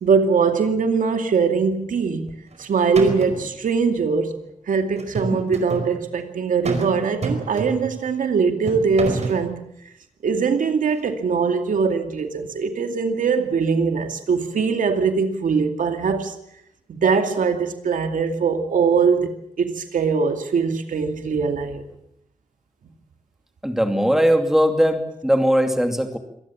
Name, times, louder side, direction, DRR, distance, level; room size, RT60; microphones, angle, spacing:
voice 1, 0.0-2.3 2.6-4.3 4.7-9.6 10.2-16.4 16.9-21.8, right 5 dB, 85° right, 2.4 m, -21 dB
sound 1, 2.3-2.6 3.0-3.5 5.0-5.9 6.7-6.9 7.2-8.0 8.7-9.4, right 3 dB, 55° right, 4.8 m, -28 dB
voice 2, 23.6-26.2, equal, 5° right, 2.7 m, -19 dB
25.5 x 19.0 x 7.4 m
wide cardioid pair, 120°, 13 cm